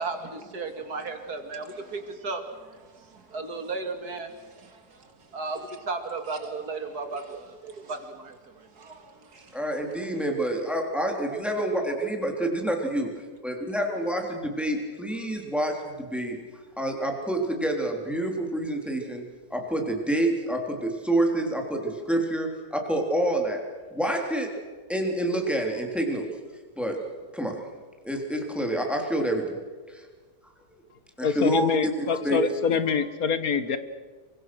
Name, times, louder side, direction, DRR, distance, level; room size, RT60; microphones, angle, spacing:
voice 1, 0.0-9.6, right 3 dB, 65° right, 6 dB, 2.9 m, -36 dB
voice 2, 9.5-13.1 13.4-16.4 16.8-19.2 19.5-23.6 23.9-24.5 24.9-26.3 26.8-27.0 27.3-27.6 28.0-29.6 29.9-30.0 31.2-32.4, right 1 dB, ahead, 2 dB, 3.6 m, -27 dB
voice 3, 31.2-33.8, left 6 dB, 60° left, 11 dB, 1.8 m, -25 dB
28.0 x 24.0 x 6.3 m, 1.4 s
omnidirectional pair, 1.8 m